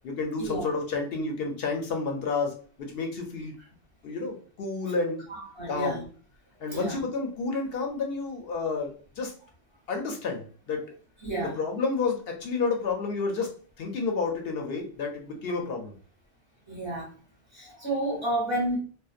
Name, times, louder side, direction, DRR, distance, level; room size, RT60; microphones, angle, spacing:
voice 1, 0.0-3.6 4.0-5.2 5.7-6.0 6.6-9.3 9.9-10.9 11.4-13.5 13.8-15.9, left 4 dB, 65° left, 3 dB, 0.7 m, -30 dB
voice 2, 5.3-6.0 6.7-7.0 11.2-11.5 16.7-17.1 17.5-18.8, right 1 dB, 25° right, -4 dB, 0.8 m, -30 dB
2.7 x 2.0 x 2.4 m, 0.41 s
omnidirectional pair, 1.3 m